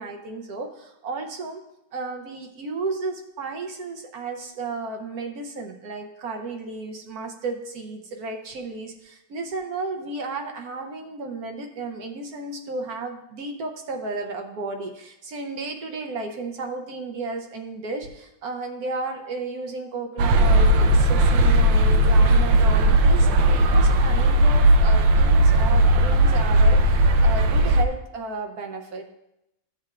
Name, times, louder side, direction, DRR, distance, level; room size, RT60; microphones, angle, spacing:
voice 1, 0.0-1.6 1.9-29.1, right 3 dB, 60° right, 3 dB, 1.1 m, -33 dB
sound 1, 20.2-27.8, right 1 dB, 75° right, 1.3 m, -17 dB
14.5 x 7.5 x 2.4 m, 0.86 s
omnidirectional pair, 2.2 m